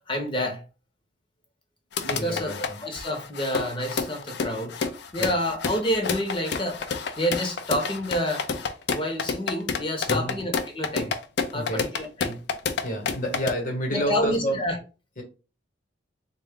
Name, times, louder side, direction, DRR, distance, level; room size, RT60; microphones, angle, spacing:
voice 1, 0.1-0.6 2.0-4.7 5.1-6.9 7.2-8.5 8.9-11.1 11.5-12.4 13.9-14.8, equal, 25° left, 0.8 m, -28 dB
sound 1, 1.9-13.5, left 5 dB, 60° left, 0.4 m, -29 dB
voice 2, 2.1-2.8 5.2-5.3 10.1-10.4 11.5-11.9 12.8-14.6 15.2-15.3, equal, 40° left, 1.1 m, -29 dB
3.6 x 2.3 x 3.6 m
head